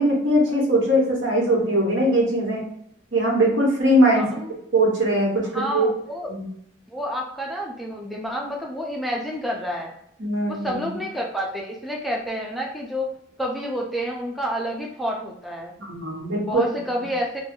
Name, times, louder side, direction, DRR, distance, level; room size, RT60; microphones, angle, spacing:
voice 1, 0.0-2.6 3.1-4.3 4.7-5.9 6.3-6.5 10.2-10.8 15.9-16.6, right 1 dB, 70° right, -3 dB, 1.1 m, -20 dB
voice 2, 4.1-4.5 5.5-6.3 6.9-9.9 10.5-13.1 13.4-15.7 16.4-17.4, equal, ahead, -1 dB, 0.3 m, -29 dB
2.4 x 2.2 x 3.4 m, 0.71 s
head